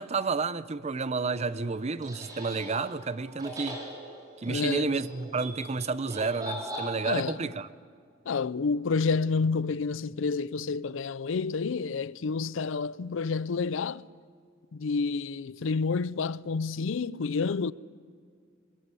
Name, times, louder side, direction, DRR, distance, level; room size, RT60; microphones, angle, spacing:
voice 1, 0.0-3.8 4.4-7.7, right 4 dB, 35° right, 0.6 m, -30 dB
sound 1, 1.2-7.4, equal, 20° right, 4.4 m, -41 dB
voice 2, 4.5-5.0 7.0-7.4 8.3-14.0 14.7-17.7, left 4 dB, 70° left, 0.5 m, -29 dB
21.5 x 21.0 x 8.3 m
head